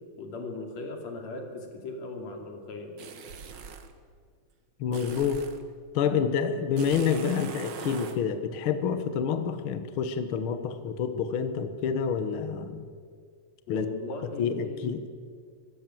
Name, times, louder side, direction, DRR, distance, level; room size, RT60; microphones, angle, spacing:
voice 1, 0.2-2.9 13.7-14.9, left 3 dB, 50° left, 3 dB, 3.7 m, -38 dB
sound 1, 3.0-3.9 4.9-5.6 6.8-8.2, right 6 dB, 75° right, 1.0 m, -40 dB
voice 2, 4.8-5.4 5.9-12.9 13.7-13.9 14.4-15.1, left 7 dB, 75° left, 10 dB, 1.2 m, -28 dB
24.0 x 15.0 x 7.7 m, 2.1 s
omnidirectional pair, 4.1 m